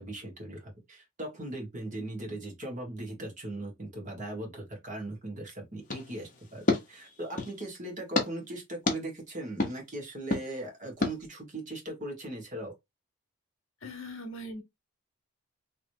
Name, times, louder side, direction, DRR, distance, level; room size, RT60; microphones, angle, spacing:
voice 1, 0.0-12.7, right 1 dB, 35° right, 1.5 m, -39 dB
sound 1, 5.9-7.6 8.1-8.3 8.9-9.0 9.6-9.7 10.3-10.4 11.0-11.1, left 2 dB, 35° left, 0.9 m, -30 dB
voice 2, 13.8-14.6, left 1 dB, 60° left, 1.1 m, -40 dB
3.1 x 3.0 x 2.7 m
head